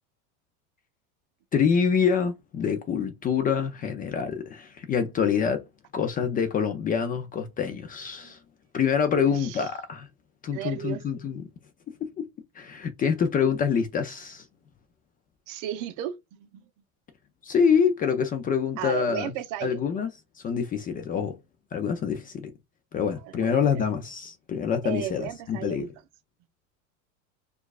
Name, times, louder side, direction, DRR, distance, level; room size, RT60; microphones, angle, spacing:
voice 1, 1.5-5.6 5.9-8.4 8.7-10.1 10.4-11.4 12.0-12.2 12.6-14.4 17.4-19.3 19.6-21.4 21.7-22.5 22.9-25.9, left 6 dB, 20° left, 0.4 m, -26 dB
voice 2, 9.1-9.6 10.5-11.0 15.5-16.7 18.8-19.8 23.2-23.8 24.8-25.9, right 11 dB, 50° right, 0.7 m, -34 dB
4.4 x 2.4 x 2.3 m
supercardioid pair, 115°, 40 cm